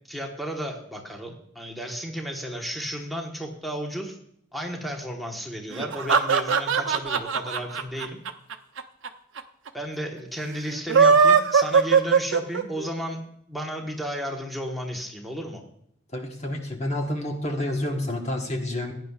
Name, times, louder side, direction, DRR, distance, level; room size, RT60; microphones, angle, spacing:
voice 1, 0.0-4.2 4.5-8.2 9.7-13.2 13.5-15.6, equal, ahead, 0 dB, 1.2 m, -33 dB
sound 1, 5.7-9.1 9.4-9.5 9.7-9.8 10.7-12.9, right 5 dB, 80° right, 0.7 m, -19 dB
voice 2, 16.1-18.9, left 1 dB, 35° left, 2 dB, 1.2 m, -29 dB
16.0 x 9.6 x 2.4 m, 0.71 s
head